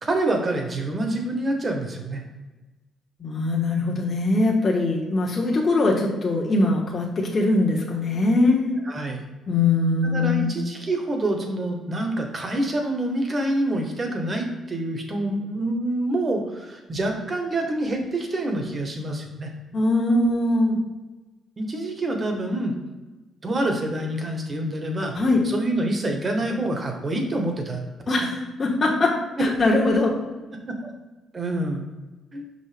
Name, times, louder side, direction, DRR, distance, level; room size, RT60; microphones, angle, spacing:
voice 1, 0.0-2.2 8.9-9.3 10.0-19.5 21.6-22.7 23.4-25.1 25.4-27.9 30.8-30.9 31.3-31.9 32.3-32.5, right 1 dB, 35° right, 3 dB, 1.4 m, -26 dB
voice 2, 3.2-8.8 9.5-10.6 19.7-20.8 25.1-25.4 28.1-29.1 29.4-30.1, left 2 dB, 35° left, -2 dB, 1.3 m, -21 dB
5.4 x 5.2 x 3.4 m, 1.2 s
cardioid pair, 90°, 0 cm